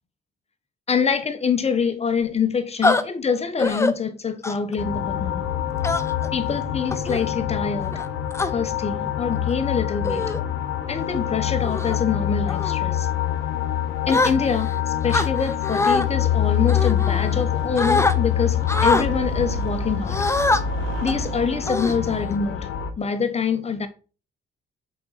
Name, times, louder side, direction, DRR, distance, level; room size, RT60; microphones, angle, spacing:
voice 1, 0.9-5.5 6.3-8.0 8.4-10.3 10.9-13.1 14.1-20.2 21.0-22.7 23.0-23.9, left 6 dB, 30° left, 1.0 m, -25 dB
sound 1, 2.8-3.0 3.6-3.9 4.4-4.7 5.8-6.3 6.9-7.2 7.9-8.5 9.3-9.5 10.0-10.4 10.9-11.1 11.6-12.0 12.5-12.8 14.1-14.7 15.1-16.1 16.7-17.5 17.8-18.1 18.7-19.1 20.1-20.6 21.1-21.2 21.7-22.4, left 3 dB, 15° left, 0.6 m, -23 dB
sound 2, 4.8-22.9, left 9 dB, 80° left, 1.0 m, -25 dB
Engine starting, 15.7-22.2, right 9 dB, 90° right, 0.8 m, -42 dB
6.5 x 4.1 x 4.1 m
cardioid pair, 90°, 20 cm